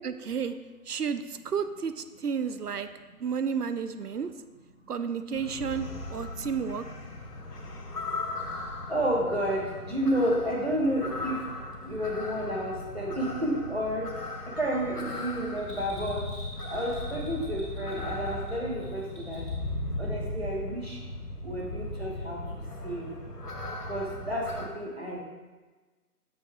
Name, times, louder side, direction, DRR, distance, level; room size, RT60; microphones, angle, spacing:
voice 1, 0.0-0.5 0.9-2.9 3.2-4.3 4.9-6.8, right 6 dB, 80° right, 11 dB, 0.6 m, -31 dB
sound 1, 5.3-24.7, left 2 dB, 85° left, 1.1 m, -37 dB
voice 2, 8.9-11.4 11.8-14.1 14.6-16.3 16.7-19.4 20.0-21.0 21.4-22.4 22.8-23.1 23.8-25.2, equal, 45° right, -2 dB, 1.2 m, -30 dB
Bell, 15.6-19.7 20.0-20.1, equal, 35° left, 1.5 m, -48 dB
7.2 x 6.1 x 2.3 m, 1.3 s
figure-of-eight pair, 175°, 46 cm